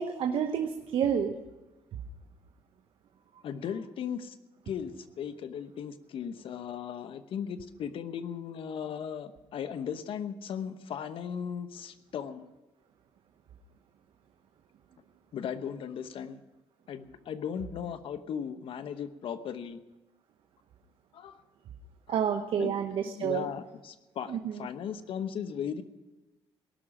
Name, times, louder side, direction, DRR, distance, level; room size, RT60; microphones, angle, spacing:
voice 1, 0.0-1.3 22.1-23.4 24.3-24.6, right 8 dB, 65° right, 6 dB, 1.0 m, -29 dB
voice 2, 3.4-4.3 4.7-12.5 15.3-16.4 16.9-19.8 21.1-21.4 22.1-22.7 23.0-25.8, left 8 dB, 65° left, 11 dB, 1.0 m, -37 dB
18.0 x 6.3 x 9.9 m, 1.1 s
cardioid pair, 95°, 10 cm